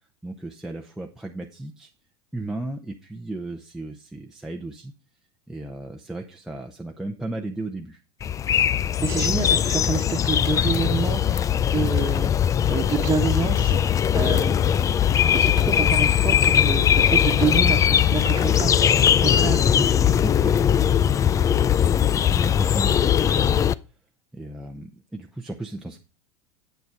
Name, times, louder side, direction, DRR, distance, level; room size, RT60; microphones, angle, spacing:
voice 1, 0.2-1.9 2.3-4.9 5.5-8.0 19.7-21.6 22.0-23.6 24.3-26.0, right 2 dB, 5° right, 0 dB, 0.9 m, -35 dB
sound 1, 8.2-23.7, left 9 dB, 25° left, 0.4 m, -20 dB
voice 2, 9.0-11.4 11.7-12.3 12.7-14.5 15.3-18.7 19.2-19.6, right 4 dB, 20° right, -1 dB, 1.4 m, -27 dB
8.0 x 7.1 x 5.0 m, 0.31 s
supercardioid pair, 115°, 14 cm